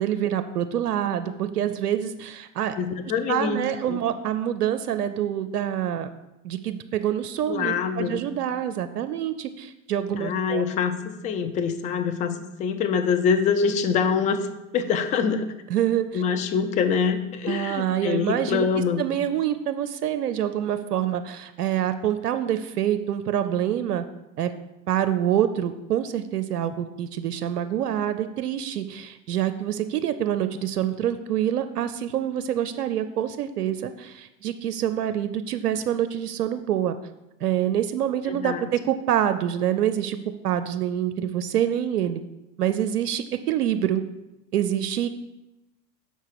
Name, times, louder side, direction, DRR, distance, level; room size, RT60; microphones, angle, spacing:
voice 1, 0.0-2.8 3.3-6.1 6.4-10.6 15.7-16.2 17.5-18.7 19.0-24.1 24.4-24.5 24.9-37.0 37.4-40.2 40.4-42.2 42.6-44.0 44.5-45.1, right 10 dB, 85° right, 10 dB, 0.6 m, -26 dB
voice 2, 2.8-3.6 3.9-4.0 7.5-8.2 10.2-14.5 14.7-15.5 16.1-19.0 38.3-38.7, left 6 dB, 20° left, 9 dB, 0.4 m, -25 dB
6.4 x 4.6 x 6.7 m, 0.95 s
hypercardioid pair, 100°, 46 cm